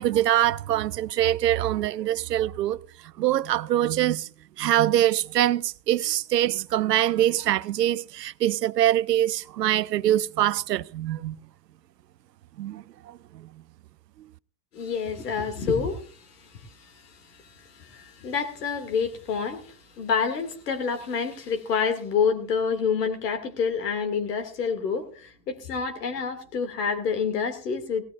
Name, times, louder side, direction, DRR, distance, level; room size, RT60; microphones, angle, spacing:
voice 1, 0.0-2.8 3.2-4.3 4.6-11.4 12.6-13.5, right 12 dB, 90° right, 0.6 m, -24 dB
voice 2, 14.7-28.1, left 6 dB, 80° left, 2.5 m, -28 dB
18.0 x 16.5 x 2.5 m
hypercardioid pair, 75°, 47 cm